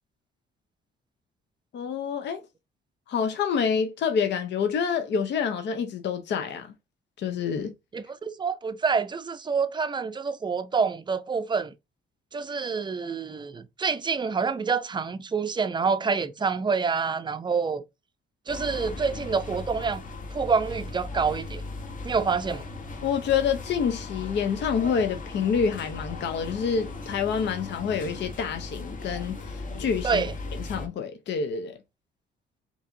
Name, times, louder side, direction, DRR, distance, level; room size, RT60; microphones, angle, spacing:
voice 1, 1.7-2.4 3.1-6.7 7.2-7.7 23.0-30.2 30.6-31.8, left 6 dB, 65° left, 0.6 m, -27 dB
voice 2, 7.9-11.7 12.3-17.8 18.5-20.0 20.3-21.6 22.0-22.7 30.0-30.3, right 5 dB, 25° right, 0.5 m, -27 dB
sound 1, 18.5-30.9, left 3 dB, 40° left, 0.9 m, -37 dB
4.6 x 2.8 x 2.6 m
cardioid pair, 90°, 20 cm